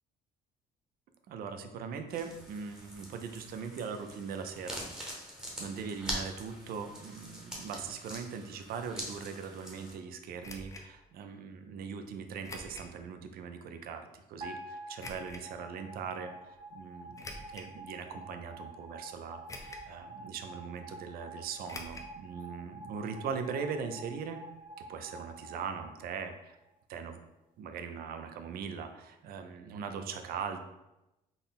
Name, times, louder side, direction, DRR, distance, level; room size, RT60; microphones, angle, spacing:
voice 1, 1.3-5.3 5.6-24.4 24.8-26.6 26.9-27.2 27.6-30.6, right 6 dB, 65° right, 7 dB, 0.5 m, -40 dB
sound 1, 2.1-9.9, equal, 5° right, 0.9 m, -44 dB
sound 2, 10.4-10.9 12.4-12.9 13.5-13.6 15.0-15.4 17.1-17.7 18.4-18.5 19.5-20.0 20.2-20.3 21.7-22.1 22.4-22.5 22.8-22.9, left 2 dB, 20° left, 0.5 m, -45 dB
sound 3, 14.4-26.7, right 1 dB, 30° right, 1.0 m, -48 dB
3.7 x 2.0 x 4.0 m, 0.93 s
cardioid pair, 110°, 17 cm